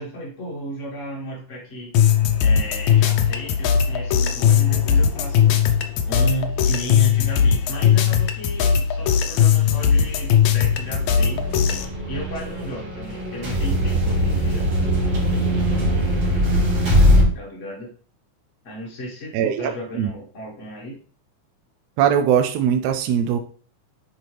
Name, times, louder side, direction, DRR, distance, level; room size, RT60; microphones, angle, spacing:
voice 1, 0.0-1.9 2.4-5.6 6.1-11.6 12.1-14.7 17.3-17.9 18.6-21.0, equal, 50° left, -2 dB, 0.9 m, -34 dB
sound 1, 1.9-11.9, left 8 dB, 75° left, 1.9 m, -19 dB
sound 2, 10.2-17.2, equal, 50° right, 3.2 m, -21 dB
voice 2, 19.3-20.1 22.0-23.4, right 9 dB, 85° right, 7 dB, 1.5 m, -21 dB
9.3 x 4.4 x 3.2 m, 0.41 s
omnidirectional pair, 3.6 m